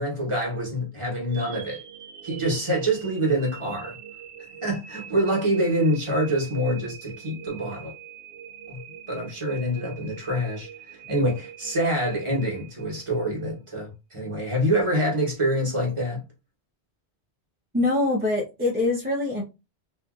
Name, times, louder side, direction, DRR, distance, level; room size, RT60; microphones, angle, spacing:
voice 1, 0.0-1.8 2.2-4.0 4.6-7.9 8.7-8.8 9.1-16.2, right 1 dB, 30° right, 1.1 m, -26 dB
sound 1, 1.3-13.4, right 8 dB, 75° right, 0.8 m, -44 dB
voice 2, 17.7-19.4, left 2 dB, 10° right, 0.5 m, -24 dB
3.0 x 2.5 x 2.4 m
omnidirectional pair, 1.1 m